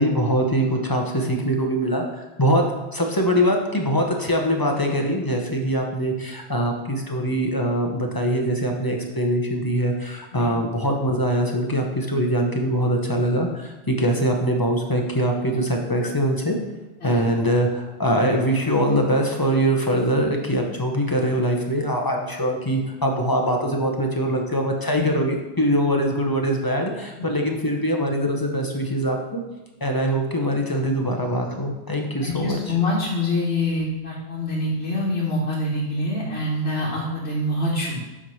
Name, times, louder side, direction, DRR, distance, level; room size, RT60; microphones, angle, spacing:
voice 1, 0.0-2.6 2.9-16.6 17.0-29.4 29.8-32.7, equal, 25° left, 2 dB, 0.7 m, -23 dB
voice 2, 32.2-38.1, left 1 dB, 80° left, -7 dB, 1.5 m, -25 dB
7.3 x 3.1 x 5.5 m, 1.1 s
omnidirectional pair, 1.1 m